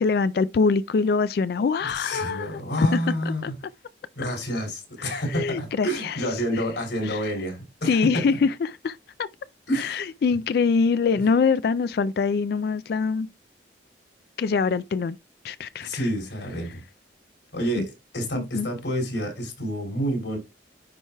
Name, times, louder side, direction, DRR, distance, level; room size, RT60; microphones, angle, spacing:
voice 1, 0.0-3.0 3.4-3.5 5.0-6.2 6.5-6.6 7.0-7.2 7.8-9.3 9.7-13.3 14.4-15.2 15.4-16.0 17.8-17.9 18.4-18.7, left 5 dB, 55° left, 0.3 m, -24 dB
voice 2, 1.8-3.5 4.1-8.4 9.7-10.1 15.8-16.8 17.5-20.4, equal, 75° left, 3.4 m, -29 dB
10.0 x 4.6 x 2.2 m
head